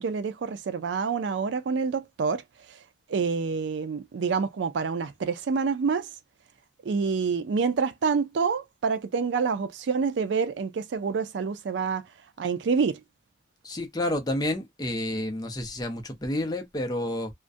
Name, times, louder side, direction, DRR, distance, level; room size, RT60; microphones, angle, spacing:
voice 1, 0.0-2.4 2.7-2.8 3.1-6.1 6.8-12.1 12.4-13.0, right 5 dB, 85° right, 0.4 m, -27 dB
voice 2, 13.6-17.3, left 1 dB, 20° left, 0.6 m, -30 dB
2.4 x 2.1 x 2.4 m
head